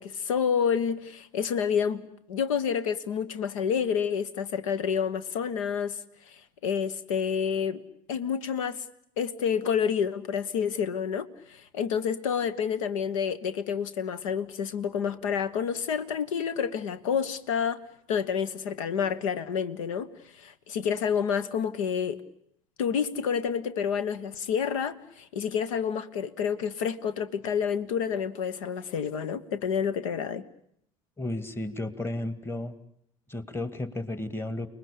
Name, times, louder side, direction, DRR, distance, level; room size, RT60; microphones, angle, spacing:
voice 1, 0.0-6.0 6.6-7.8 8.1-8.8 9.2-17.8 18.1-20.1 20.3-22.2 22.8-30.4, left 7 dB, 70° left, 15 dB, 1.3 m, -29 dB
voice 2, 31.2-32.7 33.3-34.7, left 1 dB, 15° left, 12 dB, 2.2 m, -33 dB
29.5 x 20.0 x 8.6 m, 0.73 s
figure-of-eight pair, 65°, 18 cm